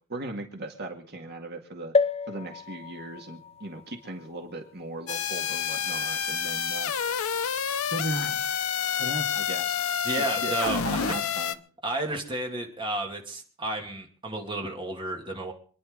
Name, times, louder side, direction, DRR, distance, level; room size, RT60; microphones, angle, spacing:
voice 1, 0.1-1.9 2.3-6.9 7.9-8.5 9.0-9.8 10.2-11.6, right 2 dB, 50° right, 3 dB, 2.0 m, -37 dB
sound 1, 1.9-5.6 6.2-6.3 6.5-6.6, left 4 dB, 30° left, 0.6 m, -31 dB
sound 2, 5.1-11.5, left 7 dB, 75° left, 0.8 m, -29 dB
voice 2, 10.0-11.2 11.8-15.5, right 2 dB, 25° right, 1 dB, 2.5 m, -32 dB
26.5 x 10.5 x 3.8 m, 0.42 s
head